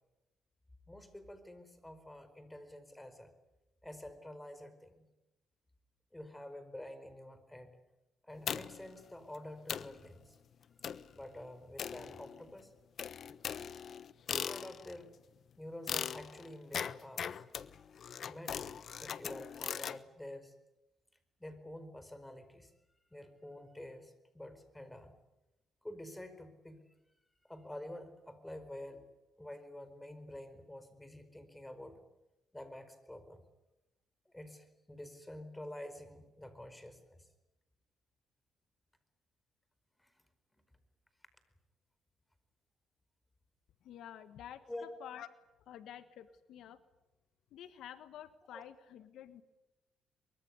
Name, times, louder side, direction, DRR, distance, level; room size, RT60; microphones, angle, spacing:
voice 1, 0.9-3.3 3.8-5.1 6.1-7.7 8.2-10.4 11.1-12.7 14.3-15.1 15.6-17.4 18.2-18.7 19.0-20.5 21.4-22.7 23.1-25.2 25.8-26.9 27.5-29.0 29.4-32.0 32.5-33.4 34.3-37.2 40.0-40.1 44.7-44.9 48.5-48.6, left 1 dB, 10° left, 11 dB, 4.9 m, -48 dB
sound 1, 8.5-8.9 9.3-9.4 9.7-10.0 10.8-11.1 11.8-12.5 13.0-15.0 15.9-20.0, left 8 dB, 55° left, 1.1 m, -40 dB
voice 2, 43.8-44.6 45.0-45.3 45.7-46.8 47.5-49.4, left 10 dB, 80° left, 12 dB, 1.5 m, -49 dB
23.5 x 23.5 x 9.7 m, 0.97 s
cardioid pair, 90°, 0 cm